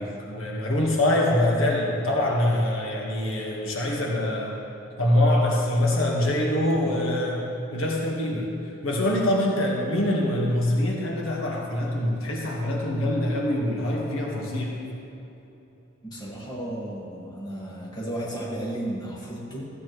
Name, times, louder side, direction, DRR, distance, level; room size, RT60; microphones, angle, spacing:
voice 1, 0.0-4.6 5.0-8.5 8.8-14.8, left 1 dB, 80° left, -2 dB, 1.5 m, -24 dB
voice 2, 16.0-19.7, right 1 dB, 20° left, -5 dB, 1.7 m, -33 dB
13.5 x 8.7 x 3.1 m, 3.0 s
head